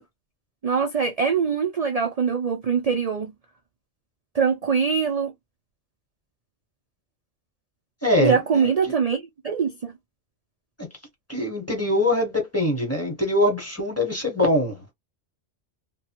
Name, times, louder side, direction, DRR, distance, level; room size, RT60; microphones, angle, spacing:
voice 1, 0.6-3.3 4.3-5.3 8.2-9.9, right 6 dB, 75° right, 0.3 m, -23 dB
voice 2, 8.0-8.9 11.3-14.8, left 1 dB, 15° left, 0.9 m, -23 dB
2.9 x 2.3 x 2.8 m
omnidirectional pair, 1.3 m